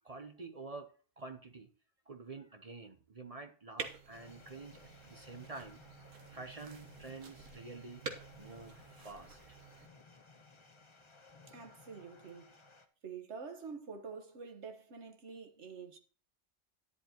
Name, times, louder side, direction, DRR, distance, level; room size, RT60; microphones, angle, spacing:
voice 1, 0.0-0.9 1.2-1.7 2.1-5.8 6.3-8.1 8.4-9.4, right 3 dB, 35° right, 0.7 m, -48 dB
sound 1, 3.8-9.9, right 5 dB, 80° right, 1.5 m, -48 dB
sound 2, 4.1-12.9, left 3 dB, 25° left, 0.8 m, -59 dB
voice 2, 11.5-12.5 13.0-16.0, right 5 dB, 65° right, 1.6 m, -47 dB
11.0 x 10.5 x 2.9 m
omnidirectional pair, 1.3 m